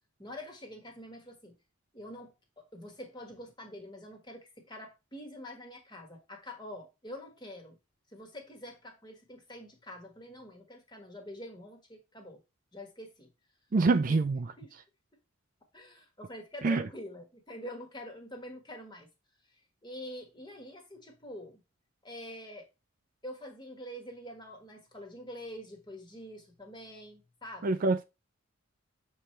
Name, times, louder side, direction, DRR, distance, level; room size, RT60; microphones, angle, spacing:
voice 1, 0.2-1.6 1.9-7.8 8.1-12.4 12.7-13.3 14.1-14.2 14.6-14.7 15.7-19.1 19.8-21.6 22.0-22.7 23.2-27.8, left 1 dB, 20° left, 1.4 m, -46 dB
voice 2, 13.7-14.5 16.6-16.9 27.6-28.0, right 3 dB, 40° right, 0.4 m, -26 dB
6.8 x 3.2 x 4.4 m
head